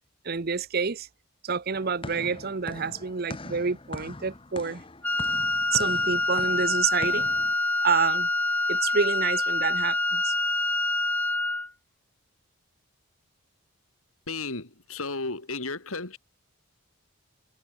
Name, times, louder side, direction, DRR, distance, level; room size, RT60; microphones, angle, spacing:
voice 1, 0.2-1.1 1.4-4.8 5.7-7.3 7.8-8.3 8.7-10.3, right 5 dB, 45° right, 0.7 m, -28 dB
sound 1, 1.7-7.5, left 2 dB, 25° left, 1.1 m, -41 dB
Wind instrument woodwind instrument, 5.0-11.7, left 2 dB, 10° left, 0.4 m, -26 dB
voice 2, 14.3-16.2, left 3 dB, 75° left, 3.2 m, -33 dB
head